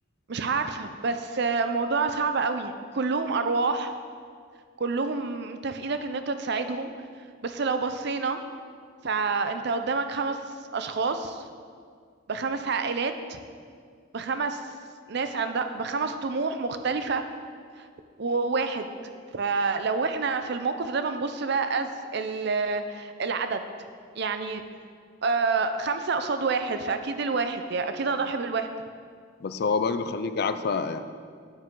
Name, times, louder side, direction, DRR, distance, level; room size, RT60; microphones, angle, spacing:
voice 1, 0.3-3.9 4.8-6.9 7.4-8.4 9.0-10.4 10.7-11.4 12.3-13.4 14.1-14.7 15.1-17.2 18.2-18.9 19.3-23.6 24.2-24.6 25.2-28.7, right 4 dB, 60° right, 8 dB, 0.6 m, -28 dB
voice 2, 29.4-31.0, left 4 dB, 55° left, 10 dB, 0.4 m, -27 dB
9.2 x 8.4 x 3.8 m, 2.1 s
head